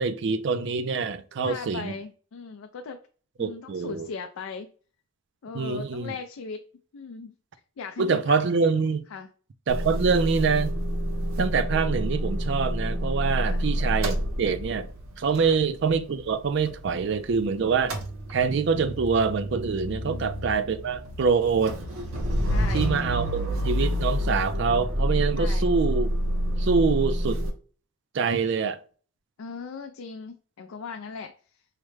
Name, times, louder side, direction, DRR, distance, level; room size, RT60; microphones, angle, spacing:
voice 1, 0.0-1.9 3.4-4.1 5.5-6.1 8.0-9.0 9.7-10.7 11.4-14.9 15.2-18.0 18.3-21.8 22.7-26.1 26.6-27.4 28.1-28.8, right 5 dB, 55° right, 0.4 m, -25 dB
voice 2, 1.4-3.0 3.4-4.7 5.4-6.6 6.9-7.3 7.8-8.4 9.1-9.3 13.4-13.6 15.4-15.6 19.8-20.3 22.5-22.9 25.3-25.7 29.4-31.3, left 5 dB, 70° left, 0.4 m, -38 dB
Motor vehicle (road) / Engine starting / Idling, 9.7-17.4 17.7-27.5, equal, 75° right, 0.8 m, -28 dB
4.8 x 2.1 x 3.1 m
head